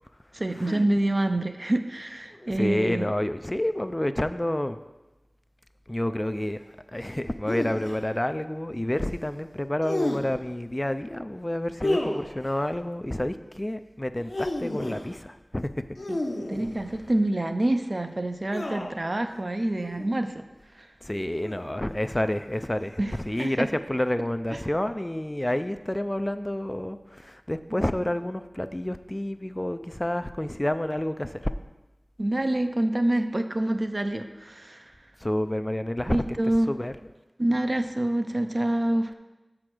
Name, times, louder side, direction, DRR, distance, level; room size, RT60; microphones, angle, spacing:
voice 1, 0.3-3.1 16.1-16.2 16.5-20.4 20.8-20.9 23.0-23.1 23.4-23.7 24.5-24.6 32.2-34.9 36.1-36.7 37.4-39.1, right 1 dB, 50° right, 7 dB, 0.5 m, -26 dB
voice 2, 2.3-4.8 5.9-6.6 6.9-15.8 21.0-31.5 35.2-36.2 36.7-37.0, left 1 dB, 25° left, 10 dB, 0.3 m, -29 dB
sound 1, 7.4-8.0 9.8-10.5 11.8-12.6 14.1-15.1 16.0-17.1 18.5-19.1 19.8-20.1 21.4-21.9 23.1-23.4, left 1 dB, 70° left, 0.8 m, -31 dB
6.2 x 4.9 x 6.0 m, 1.1 s
wide cardioid pair, 50°, 0 cm